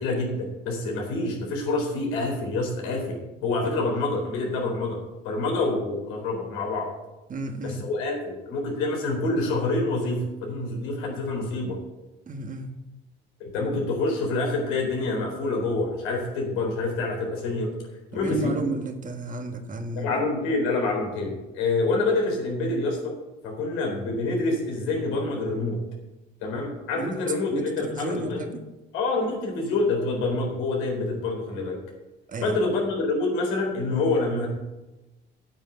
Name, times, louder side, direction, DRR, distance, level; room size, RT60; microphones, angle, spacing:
voice 1, 0.0-5.0 5.2-6.9 7.6-11.8 13.4-17.7 18.1-18.5 20.0-23.1 23.4-25.8 26.4-28.4 28.9-31.8 32.4-34.5, left 2 dB, 90° left, 0 dB, 4.1 m, -27 dB
voice 2, 7.3-7.8 12.3-12.7 18.1-20.2 27.0-27.2 27.5-28.6 32.3-32.6, right 2 dB, 40° right, 6 dB, 1.6 m, -32 dB
8.8 x 7.0 x 8.1 m, 1.0 s
cardioid pair, 95°, 21 cm